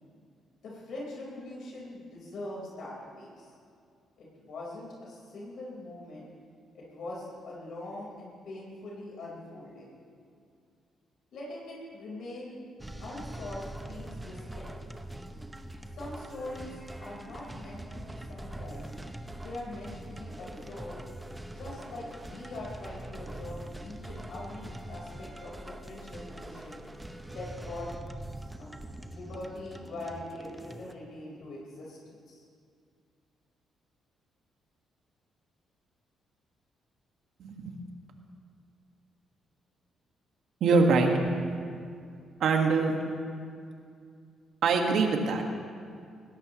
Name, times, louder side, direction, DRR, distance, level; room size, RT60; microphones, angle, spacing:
voice 1, 0.6-3.5 4.2-6.3 6.7-9.9 11.3-12.6 13.0-14.7 15.9-16.7 17.0-18.9 19.4-21.0 21.5-26.8 27.3-27.9 28.6-32.4, left 2 dB, 70° left, -4 dB, 4.8 m, -42 dB
sound 1, 12.8-30.9, right 1 dB, 10° right, 0.9 m, -43 dB
voice 2, 37.4-37.8 40.6-41.1 42.4-43.0 44.6-45.4, right 4 dB, 70° right, 2 dB, 1.9 m, -23 dB
20.0 x 17.0 x 3.2 m, 2.3 s
cardioid pair, 90°, 0 cm